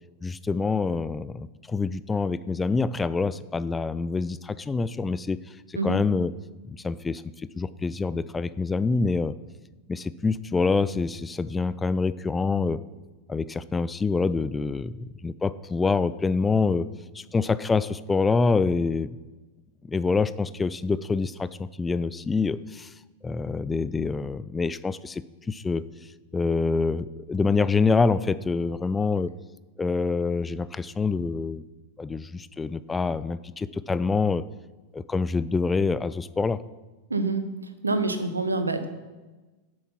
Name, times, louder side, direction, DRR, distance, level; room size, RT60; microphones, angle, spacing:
voice 1, 0.2-5.4 5.7-6.3 6.7-7.2 7.6-9.4 9.9-12.8 13.3-16.9 17.1-19.2 19.8-22.9 23.2-25.8 26.3-29.3 29.8-31.6 32.0-34.4 34.9-36.6, left 4 dB, 15° left, 16 dB, 0.3 m, -26 dB
voice 2, 37.1-37.5 37.8-38.9, right 3 dB, 80° right, 9 dB, 0.9 m, -26 dB
8.1 x 7.2 x 5.8 m, 1.2 s
figure-of-eight pair, 90°, 0 cm